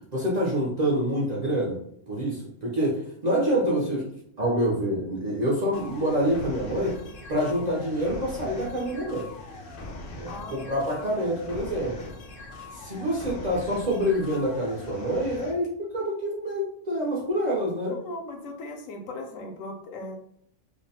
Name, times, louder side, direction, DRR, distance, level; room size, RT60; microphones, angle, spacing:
voice 1, 0.1-1.8 2.1-4.0 4.4-7.0 7.3-9.3 10.2-12.1 12.7-17.9, equal, 50° right, -4 dB, 0.5 m, -26 dB
sound 1, 5.7-15.5, left 2 dB, 60° left, 0.6 m, -41 dB
voice 2, 10.3-10.7 17.8-20.2, left 2 dB, 90° left, 3 dB, 1.0 m, -38 dB
2.6 x 2.1 x 2.7 m, 0.68 s
omnidirectional pair, 1.3 m